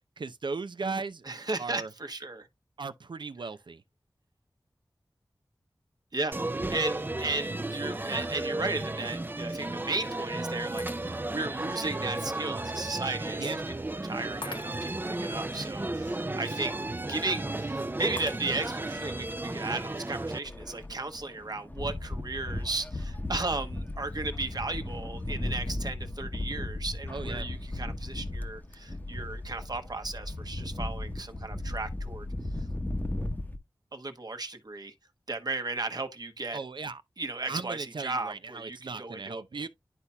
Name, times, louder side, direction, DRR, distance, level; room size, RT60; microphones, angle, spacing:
voice 1, 0.2-1.2 1.6-1.9 2.8-3.8 13.4-13.6 27.1-27.5 36.5-37.0 37.5-39.7, right 4 dB, 70° right, 0.6 m, -36 dB
voice 2, 1.3-2.5 6.1-6.4 6.7-13.5 13.8-16.7 17.1-32.3 33.9-34.9 35.3-36.6 37.2-39.7, right 2 dB, 55° right, 1.2 m, -35 dB
sound 1, 6.3-20.4, right 2 dB, 25° right, 0.5 m, -34 dB
Shatter, 10.8-11.5 12.0-12.1 14.4-15.1 18.2-18.9, left 3 dB, 85° left, 0.9 m, -44 dB
sound 2, 20.4-33.6, left 1 dB, 20° left, 0.9 m, -36 dB
11.0 x 4.1 x 2.3 m
wide cardioid pair, 50°, 8 cm